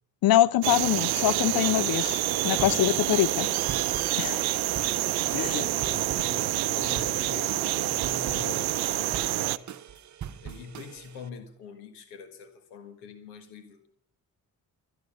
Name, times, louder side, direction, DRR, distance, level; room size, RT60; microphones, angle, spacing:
voice 1, 0.2-2.2 2.4-3.5 4.2-4.4 5.3-5.6, left 13 dB, 60° left, 0.7 m, -24 dB
sound 1, 0.6-9.6, right 18 dB, 65° right, 0.6 m, -27 dB
sound 2, 1.1-9.5, left 3 dB, 35° left, 1.5 m, -45 dB
sound 3, 2.6-11.3, right 9 dB, 45° right, 1.0 m, -43 dB
voice 2, 4.6-5.0 5.2-9.7 10.4-13.9, left 6 dB, 85° left, 1.7 m, -44 dB
25.5 x 9.7 x 5.4 m
hypercardioid pair, 45°, 41 cm